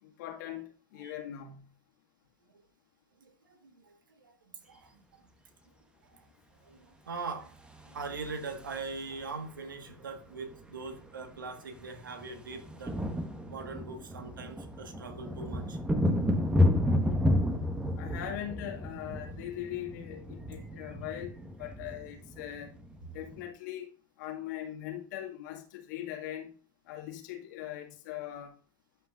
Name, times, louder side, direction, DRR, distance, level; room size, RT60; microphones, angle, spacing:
voice 1, 0.0-1.6 18.0-22.7 23.1-23.9 24.2-26.5 26.9-28.5, left 11 dB, 65° left, 2.1 m, -40 dB
voice 2, 3.2-5.2 6.1-6.3 6.6-7.6 7.8-13.0 13.5-15.8 18.0-18.1, right 4 dB, 85° right, 1.6 m, -42 dB
sound 1, 7.6-9.2 10.5-10.6 10.8-11.0 11.3-23.4, left 1 dB, 10° right, 1.3 m, -31 dB
13.0 x 5.8 x 2.5 m
hypercardioid pair, 100°, 11 cm